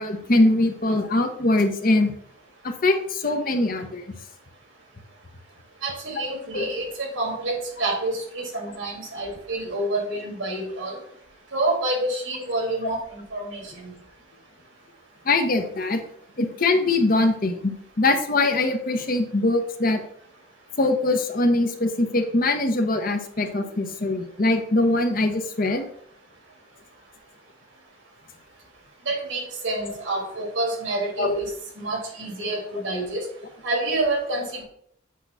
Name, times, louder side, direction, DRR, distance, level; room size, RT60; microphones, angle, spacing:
voice 1, 0.0-2.1 2.6-4.1 6.2-6.3 6.5-6.7 15.2-16.0 16.4-20.0 20.8-25.9 31.2-31.4, left 2 dB, 45° left, 6 dB, 0.8 m, -22 dB
voice 2, 5.8-11.0 11.5-13.9 29.0-31.5 31.8-33.3 33.6-34.6, right 2 dB, 75° right, -1 dB, 2.9 m, -28 dB
8.3 x 3.0 x 5.5 m, 0.67 s
head